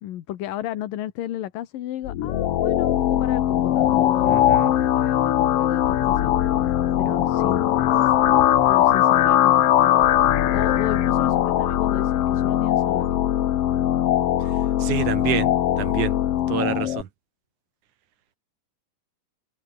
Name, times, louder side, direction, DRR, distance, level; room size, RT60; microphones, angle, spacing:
voice 1, 0.0-6.6 7.0-7.6 7.9-8.1 8.7-13.1, left 13 dB, 80° left, 3.1 m, -33 dB
sound 1, 2.0-17.0, left 12 dB, 65° left, 1.6 m, -20 dB
voice 2, 4.2-4.7 14.8-16.1 16.5-17.1, right 11 dB, 65° right, 3.0 m, -28 dB
omnidirectional pair, 3.9 m